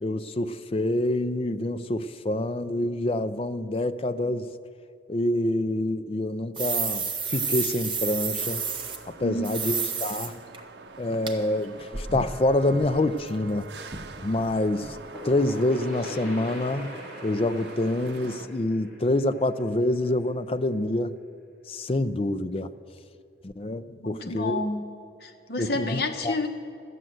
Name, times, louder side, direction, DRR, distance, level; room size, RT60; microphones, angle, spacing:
voice 1, 0.0-4.5 5.1-7.0 7.3-8.6 9.1-9.7 10.0-10.4 11.0-13.7 14.2-15.0 15.2-16.9 17.2-21.2 21.7-22.7 23.4-24.6 25.6-26.4, left 1 dB, 30° left, 11 dB, 0.4 m, -26 dB
sound 1, 6.5-9.0 9.4-10.3 10.5-10.6 11.3-11.4 11.6-13.6 13.9-14.1 14.4-14.5 14.8-14.9 15.3-15.4, right 5 dB, 30° right, 0.9 m, -31 dB
sound 2, 8.4-18.5, right 4 dB, 80° right, 0.6 m, -45 dB
voice 2, 9.2-9.8 24.0-24.9 25.2-26.5, left 2 dB, 65° left, 4 dB, 1.1 m, -30 dB
sound 3, 14.8-20.3, equal, ahead, 4.0 m, -43 dB
12.5 x 8.7 x 7.8 m, 2.6 s
head